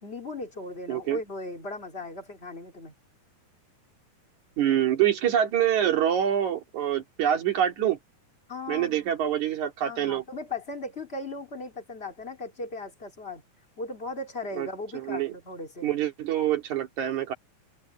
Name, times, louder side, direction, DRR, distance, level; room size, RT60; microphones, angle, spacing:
voice 1, 0.0-2.9 8.5-9.2 9.8-13.4 13.8-15.9, left 2 dB, 20° left, 2.4 m, -37 dB
voice 2, 0.9-1.2 4.6-8.0 8.7-10.2 14.6-14.7 14.9-15.3 15.8-17.3, right 10 dB, 55° right, 3.7 m, -25 dB
omnidirectional pair, 4.1 m